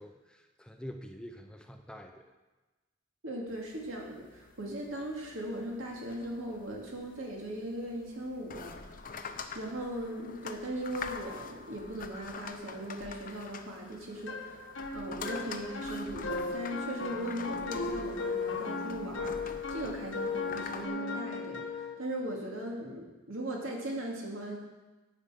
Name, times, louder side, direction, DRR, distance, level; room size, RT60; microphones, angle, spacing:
voice 1, 0.0-2.3, equal, 5° left, 4 dB, 0.6 m, -46 dB
voice 2, 3.2-9.0 9.5-14.6 14.9-24.6, right 1 dB, 85° right, -1 dB, 2.3 m, -39 dB
sound 1, 3.5-20.9, left 5 dB, 45° left, 0.7 m, -46 dB
sound 2, 14.3-21.9, left 3 dB, 70° left, 1.2 m, -36 dB
10.0 x 5.6 x 7.6 m, 1.2 s
head